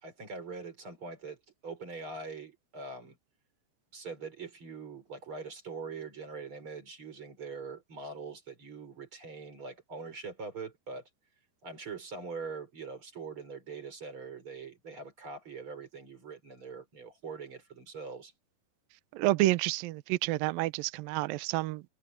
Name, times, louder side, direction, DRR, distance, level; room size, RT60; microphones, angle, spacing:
voice 1, 0.0-3.2 3.9-11.1 11.6-18.3, right 4 dB, 30° right, 5.6 m, -43 dB
voice 2, 19.1-21.8, right 17 dB, 80° right, 2.1 m, -29 dB
omnidirectional pair, 5.0 m